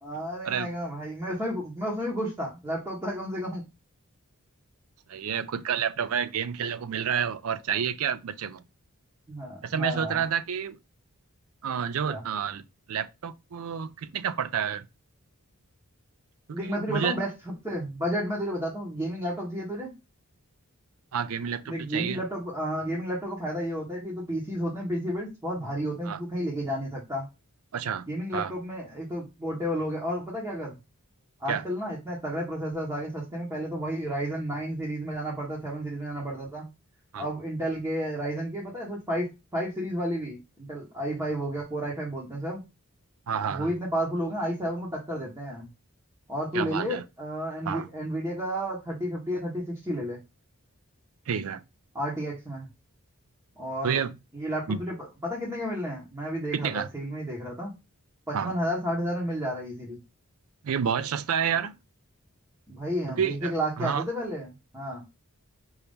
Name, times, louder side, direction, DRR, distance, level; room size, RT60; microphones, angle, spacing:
voice 1, 0.0-3.7 9.3-10.2 12.0-12.2 16.5-19.9 21.7-27.3 28.1-30.8 31.4-36.6 37.2-42.6 43.5-45.7 46.3-50.2 51.9-52.7 53.6-54.0 54.3-57.7 58.3-60.0 62.7-65.0, equal, 15° right, 1.3 m, -32 dB
voice 2, 5.1-8.6 9.6-10.8 11.6-12.6 12.9-14.8 16.5-17.2 21.1-22.2 26.0-26.2 27.7-28.5 31.5-31.6 37.1-37.3 43.3-43.7 46.5-47.0 47.7-47.9 51.3-51.6 53.8-54.2 54.7-54.8 56.5-56.9 58.3-58.5 60.6-61.8 63.2-64.0, right 7 dB, 70° right, 0.4 m, -29 dB
5.3 x 2.9 x 3.5 m
head